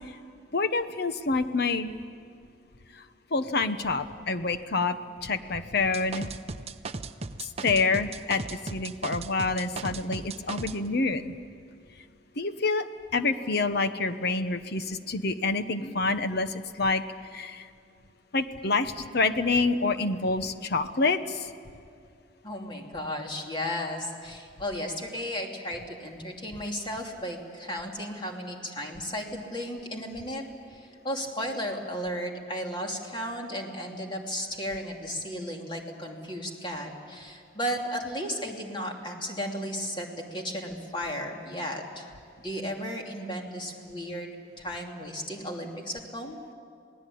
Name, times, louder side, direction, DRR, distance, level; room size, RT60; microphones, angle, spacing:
voice 1, 0.5-1.9 3.3-6.3 7.4-11.4 12.4-12.9 13.1-17.0 17.3-17.7 18.3-21.5, left 3 dB, 55° left, 10 dB, 1.1 m, -27 dB
sound 1, 5.9-10.8, right 3 dB, 35° right, 0.7 m, -36 dB
voice 2, 22.4-30.4 30.7-42.0 42.4-46.4, equal, 25° left, 1 dB, 2.8 m, -34 dB
27.5 x 19.0 x 8.6 m, 2.3 s
head